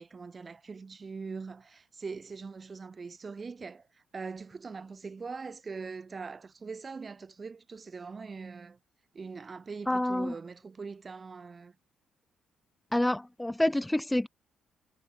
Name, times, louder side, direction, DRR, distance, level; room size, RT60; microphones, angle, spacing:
voice 1, 0.0-3.8 4.1-8.8 9.1-11.7, right 4 dB, 35° right, 5.0 m, -42 dB
voice 2, 9.9-10.3 12.9-14.3, left 1 dB, 10° left, 0.8 m, -27 dB
cardioid pair, 90°, 0 cm